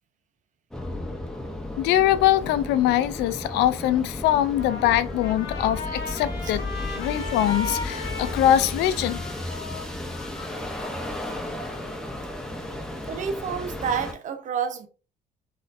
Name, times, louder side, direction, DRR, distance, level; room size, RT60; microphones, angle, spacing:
sound 1, 0.7-14.1, left 1 dB, 5° left, 0.7 m, -34 dB
voice 1, 1.8-6.7 6.9-9.2, left 12 dB, 85° left, 0.4 m, -22 dB
Trumpet, 4.4-11.8, left 3 dB, 70° left, 1.4 m, -37 dB
voice 2, 13.1-14.9, right 7 dB, 50° right, 0.7 m, -29 dB
4.1 x 2.6 x 2.5 m
cardioid pair, 110°, 17 cm